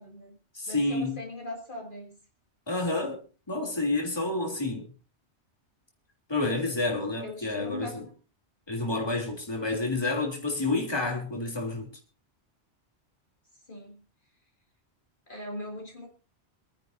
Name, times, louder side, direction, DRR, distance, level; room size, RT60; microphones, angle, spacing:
voice 1, 0.0-0.4 0.7-2.2 7.2-8.1 13.7-14.0 15.3-16.1, left 1 dB, 45° left, 2.9 m, -40 dB
voice 2, 0.5-1.2 2.7-4.9 6.3-8.0 8.7-11.9, left 2 dB, 20° left, 3.2 m, -29 dB
26.5 x 10.5 x 2.7 m
omnidirectional pair, 1.2 m